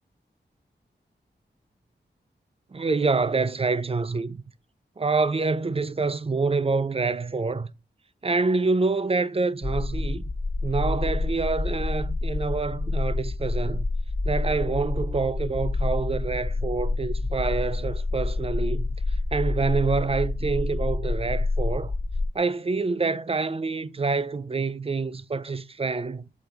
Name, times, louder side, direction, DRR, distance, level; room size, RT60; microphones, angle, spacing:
voice 1, 2.7-4.4 5.0-7.7 8.2-10.3 10.6-13.9 14.2-21.9 22.3-26.3, right 4 dB, 30° right, 0.4 m, -27 dB
sound 1, 9.6-22.3, left 2 dB, 35° left, 1.4 m, -28 dB
6.3 x 3.4 x 4.3 m
cardioid pair, 50°, 19 cm